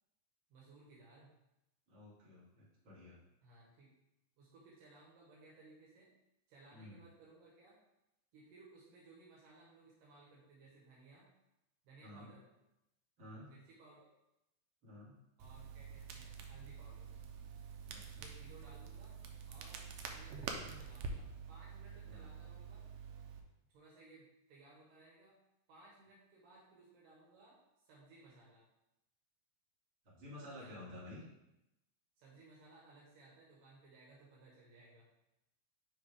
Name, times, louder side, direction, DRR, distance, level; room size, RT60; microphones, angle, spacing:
voice 1, 0.5-1.4 3.4-4.0 4.4-6.1 6.5-7.8 8.3-11.3 11.8-12.4 13.4-14.1 15.4-17.1 18.1-19.2 19.5-22.8 23.7-25.4 25.7-27.6 27.8-28.6 30.5-30.7 32.2-35.1, right 3 dB, 75° right, -4 dB, 2.8 m, -61 dB
voice 2, 1.9-3.2 6.7-7.0 12.0-12.3 13.2-13.5 14.8-15.2 17.9-18.3 22.0-22.3 30.0-31.2, left 1 dB, 35° right, -8 dB, 2.8 m, -52 dB
Crackle, 15.4-23.4, right 5 dB, 90° right, 1.6 m, -47 dB
9.3 x 3.8 x 3.5 m, 0.89 s
omnidirectional pair, 4.0 m